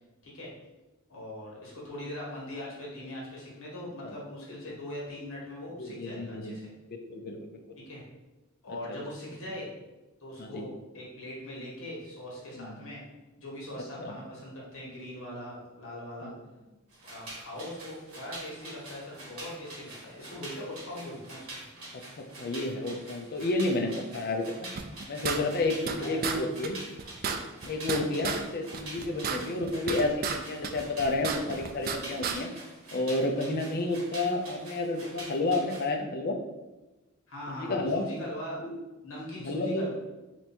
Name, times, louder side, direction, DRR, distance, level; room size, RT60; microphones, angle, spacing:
voice 1, 1.1-6.7 7.8-8.0 8.6-9.7 10.2-13.0 13.4-16.3 17.0-21.5 25.8-26.3 37.3-38.6 39.0-39.9, left 1 dB, 65° left, -4 dB, 1.5 m, -41 dB
voice 2, 5.8-6.6 6.9-7.5 10.4-10.6 12.6-12.8 14.0-14.1 16.2-16.3 22.2-24.7 25.1-26.8 27.6-32.5 32.9-36.3 37.5-38.1 38.6-38.8 39.4-39.9, left 2 dB, 45° left, 4 dB, 0.5 m, -30 dB
sound 1, 16.9-35.9, right 2 dB, 65° right, 1.3 m, -46 dB
sound 2, 24.8-26.0 26.2-26.4 26.6-26.7 27.0-28.4 28.7-30.4 30.6-32.0 32.2-32.4, right 6 dB, 45° right, 0.3 m, -32 dB
3.3 x 2.9 x 4.3 m, 1.1 s
head